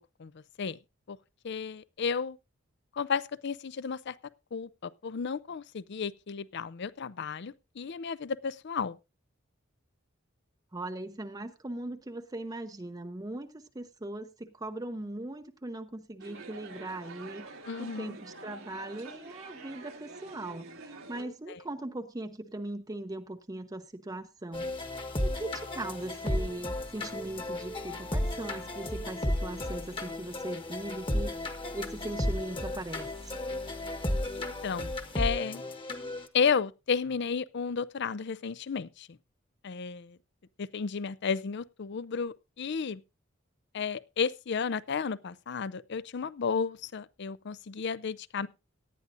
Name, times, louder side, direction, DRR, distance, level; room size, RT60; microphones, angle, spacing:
voice 1, 1.4-2.4 2.9-4.2 4.5-9.0 17.7-18.2 21.2-21.6 34.4-35.6 36.3-39.1 39.6-40.2 40.6-43.0 43.7-48.5, left 6 dB, 55° left, 0.5 m, -33 dB
voice 2, 10.7-17.5 17.8-24.7 25.2-31.3 31.7-33.3, right 1 dB, 20° right, 0.6 m, -39 dB
sound 1, 16.2-21.2, right 3 dB, 85° right, 2.1 m, -47 dB
sound 2, 24.5-36.3, left 1 dB, 25° left, 1.2 m, -34 dB
18.0 x 11.0 x 2.6 m
head